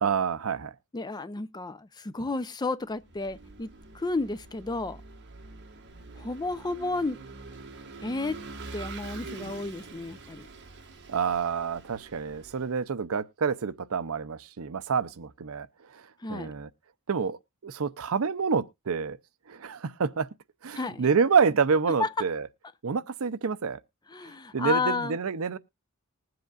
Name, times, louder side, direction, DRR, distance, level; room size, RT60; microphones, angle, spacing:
voice 1, 0.0-0.7 11.1-15.7 15.9-16.0 16.3-16.7 17.1-19.2 19.5-20.3 20.6-22.5 22.8-23.8 24.5-25.6, right 5 dB, 70° right, 0.6 m, -27 dB
voice 2, 0.9-5.0 6.2-7.2 8.0-8.4 8.7-10.5 16.2-16.5 20.8-21.0 22.0-22.1 24.1-25.2, left 3 dB, 20° left, 0.5 m, -32 dB
Vehicle / Engine, 3.0-12.8, right 3 dB, 55° right, 1.7 m, -45 dB
20.0 x 7.9 x 2.4 m
head